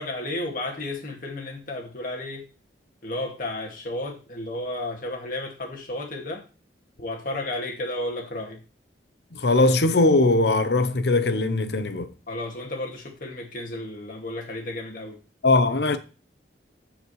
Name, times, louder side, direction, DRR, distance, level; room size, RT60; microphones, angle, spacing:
voice 1, 0.0-2.5 3.0-6.4 7.0-8.6 12.3-15.2, left 1 dB, 45° left, 2.1 m, -33 dB
voice 2, 9.3-12.1 15.4-16.0, left 2 dB, 60° left, 0.8 m, -20 dB
14.5 x 5.1 x 3.2 m
head